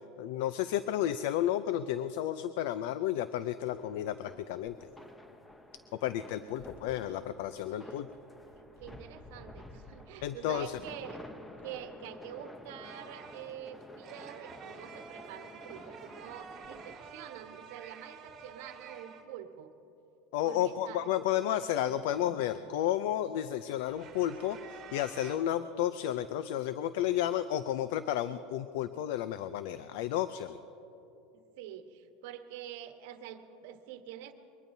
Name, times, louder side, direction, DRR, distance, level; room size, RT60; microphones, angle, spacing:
voice 1, 0.2-4.8 5.9-8.1 10.2-10.8 20.3-30.6, left 11 dB, 70° left, 12 dB, 0.4 m, -32 dB
sound 1, 3.7-16.9, left 1 dB, 5° left, 0.7 m, -51 dB
voice 2, 6.3-8.1 8.6-11.3 11.6-19.7 20.4-21.1 31.3-34.3, right 10 dB, 70° right, 7 dB, 1.2 m, -47 dB
sound 2, 12.8-19.2 21.9-22.8 23.8-25.4, right 6 dB, 30° right, 2.0 m, -50 dB
23.0 x 19.0 x 2.7 m, 3.0 s
supercardioid pair, 150°, 0 cm